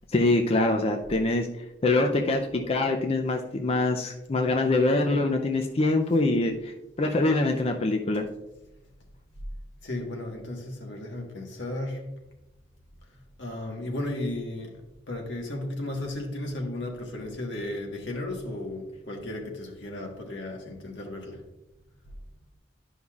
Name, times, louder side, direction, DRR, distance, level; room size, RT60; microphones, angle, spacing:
voice 1, 0.1-1.5 1.8-8.3, left 2 dB, 30° left, 0.5 m, -24 dB
voice 2, 9.8-12.1 13.1-14.8 15.1-21.4, left 1 dB, 75° left, 1.4 m, -35 dB
11.5 x 5.4 x 2.4 m
head